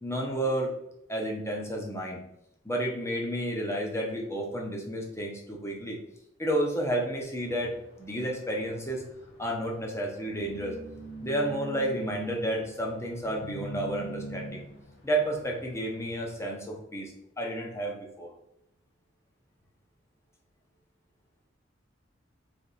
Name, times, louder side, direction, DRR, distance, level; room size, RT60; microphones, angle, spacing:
voice 1, 0.0-0.7 1.1-2.2 2.6-6.0 6.4-9.0 9.4-10.8 11.2-14.6 15.0-18.3, right 1 dB, 15° left, 0 dB, 0.9 m, -31 dB
sound 1, 7.4-16.4, right 1 dB, 65° left, 0.8 m, -44 dB
3.5 x 3.5 x 4.1 m, 0.78 s
head